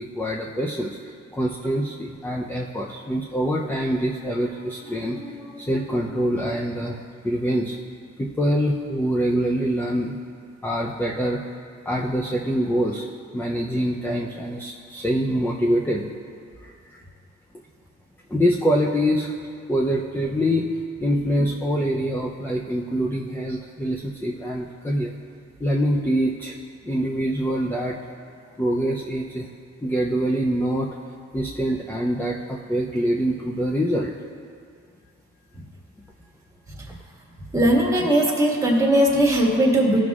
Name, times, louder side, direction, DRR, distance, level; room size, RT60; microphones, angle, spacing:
voice 1, 0.0-7.8 8.2-10.2 10.6-11.4 11.9-13.1 13.3-16.1 16.6-17.0 18.3-19.4 19.7-25.1 25.6-26.6 26.8-28.0 28.6-29.5 29.8-30.9 31.3-34.1, equal, 5° left, -1 dB, 0.6 m, -25 dB
voice 2, 37.5-40.0, right 1 dB, 10° right, -3 dB, 1.7 m, -19 dB
14.5 x 6.2 x 2.4 m, 2.3 s
cardioid pair, 90°, 30 cm